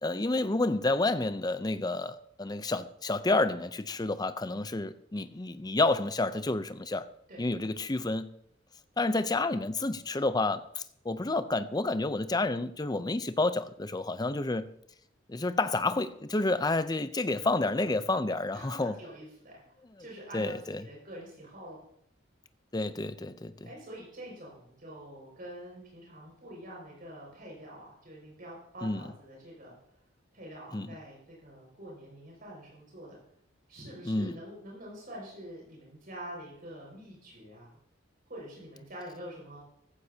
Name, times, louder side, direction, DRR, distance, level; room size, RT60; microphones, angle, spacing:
voice 1, 0.0-7.1 7.4-8.3 9.0-14.7 15.3-18.9 20.3-20.8 22.7-23.5 28.8-29.0 30.7-30.9 34.0-34.4, left 2 dB, 20° left, 0.6 m, -29 dB
voice 2, 18.5-19.6 20.0-21.8 23.6-29.7 30.3-33.2 33.7-37.8 38.3-39.6, right 1 dB, 50° right, 5.7 m, -46 dB
15.0 x 14.5 x 2.8 m
head